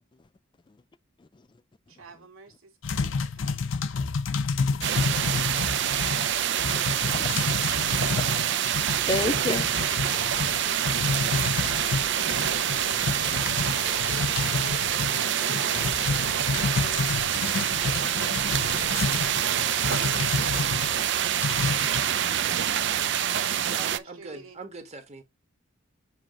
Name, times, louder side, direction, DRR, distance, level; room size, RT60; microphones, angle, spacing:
voice 1, 1.9-3.7 14.6-17.1 17.5-23.2 23.5-24.6, right 4 dB, 85° right, 2.2 m, -47 dB
sound 1, 2.8-20.9 21.4-22.0, left 4 dB, 60° left, 0.6 m, -30 dB
sound 2, 4.8-24.0, right 10 dB, 55° right, 0.5 m, -26 dB
voice 2, 6.7-7.3 7.9-8.2 9.0-10.3 10.6-10.7, left 3 dB, 20° left, 0.3 m, -32 dB
sound 3, 9.9-21.1, left 4 dB, 85° left, 1.2 m, -42 dB
voice 3, 23.7-25.2, right 3 dB, 30° right, 1.4 m, -42 dB
7.6 x 2.9 x 5.1 m
head